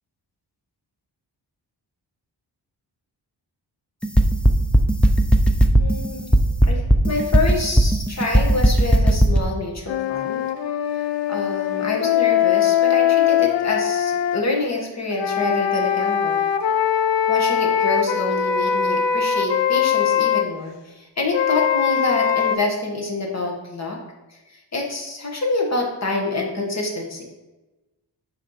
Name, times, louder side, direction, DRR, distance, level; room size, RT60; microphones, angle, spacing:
sound 1, 4.0-9.4, right 1 dB, 5° left, 0.4 m, -15 dB
voice 1, 5.8-6.4 6.6-10.4 10.9-16.4 17.3-24.0 24.3-27.2, left 3 dB, 40° left, -1 dB, 1.5 m, -26 dB
sound 2, 9.9-14.4 15.1-20.5 21.3-22.6, left 9 dB, 85° left, 0.6 m, -21 dB
8.4 x 3.3 x 5.7 m, 1.1 s
wide cardioid pair, 140°, 42 cm